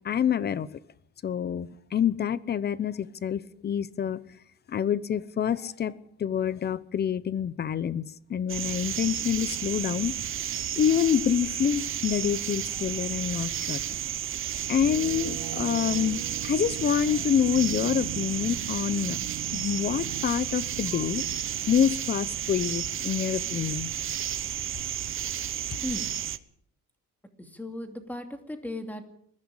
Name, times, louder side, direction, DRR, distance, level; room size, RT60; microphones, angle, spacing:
voice 1, 0.0-0.7 1.2-4.2 4.7-5.9 6.2-8.0 8.3-10.1 10.8-13.8 14.7-19.2 19.5-21.2 21.7-23.9, left 8 dB, 30° left, 0.8 m, -27 dB
sound 1, 8.5-26.4, right 10 dB, 35° right, 1.0 m, -32 dB
sound 2, 14.8-23.5, right 12 dB, 60° right, 1.0 m, -41 dB
voice 2, 27.4-29.1, left 1 dB, 5° left, 2.6 m, -36 dB
21.0 x 15.0 x 8.9 m
cardioid pair, 165°, 34 cm